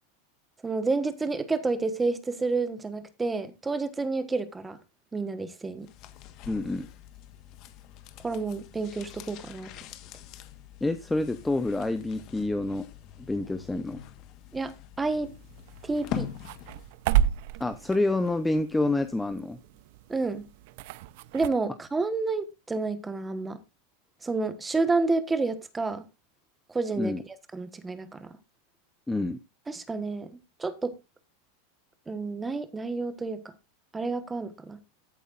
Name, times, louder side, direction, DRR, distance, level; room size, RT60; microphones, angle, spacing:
voice 1, 0.6-4.8 5.1-5.9 8.2-9.7 14.5-15.3 15.8-16.3 20.1-20.5 21.3-23.6 24.2-26.0 26.7-27.2 27.5-28.3 29.7-30.3 30.6-31.0 32.1-33.5 33.9-34.8, right 3 dB, 10° right, 1.3 m, -29 dB
sound 1, 5.8-17.0 17.3-17.4, left 10 dB, 40° left, 1.3 m, -43 dB
voice 2, 6.5-6.9 10.8-12.9 13.3-14.0 17.6-19.6 27.0-27.2 29.1-29.4, left 2 dB, 5° left, 0.7 m, -28 dB
sound 2, 15.2-21.5, right 11 dB, 55° right, 0.6 m, -32 dB
14.0 x 8.4 x 2.5 m
supercardioid pair, 160°, 0 cm